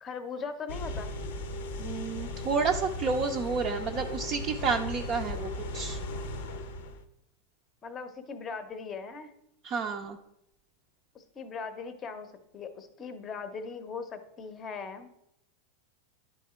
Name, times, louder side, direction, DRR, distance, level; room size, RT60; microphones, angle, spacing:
voice 1, 0.0-1.1 7.8-9.3 11.1-15.1, left 5 dB, 25° left, 9 dB, 0.7 m, -39 dB
sound 1, 0.7-7.0, left 2 dB, 75° left, 0.7 m, -37 dB
voice 2, 1.8-6.0 9.6-10.2, right 5 dB, 30° right, 2 dB, 0.5 m, -30 dB
11.0 x 3.7 x 4.3 m, 0.82 s
supercardioid pair, 150°, 0 cm